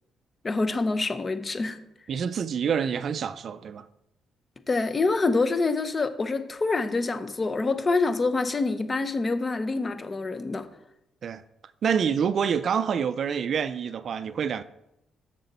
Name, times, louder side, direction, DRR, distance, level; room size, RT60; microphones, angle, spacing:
voice 1, 0.4-1.8 4.7-10.7, left 3 dB, 30° left, 0.8 m, -26 dB
voice 2, 2.1-3.9 11.2-11.4 11.8-14.6, right 7 dB, 55° right, 0.3 m, -27 dB
6.8 x 6.8 x 4.1 m
cardioid pair, 90°, 0 cm